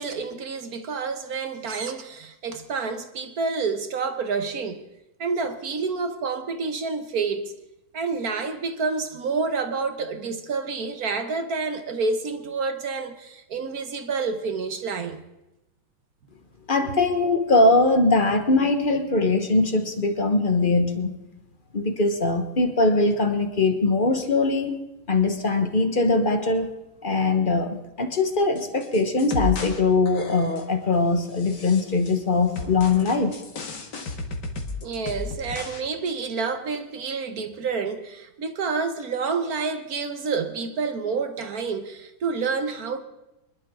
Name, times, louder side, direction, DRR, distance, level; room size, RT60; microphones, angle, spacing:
voice 1, 0.0-4.8 5.2-7.5 7.9-15.2 34.8-43.0, right 4 dB, 55° right, 1.2 m, -28 dB
voice 2, 16.7-21.2 21.7-24.8 25.1-26.7 27.0-33.4, left 3 dB, 35° left, 0.9 m, -21 dB
sound 1, 28.6-29.8 30.1-30.8 31.3-32.2 32.6-35.8 36.1-36.2, left 4 dB, 55° left, 2.1 m, -33 dB
24.5 x 11.5 x 3.7 m
omnidirectional pair, 2.3 m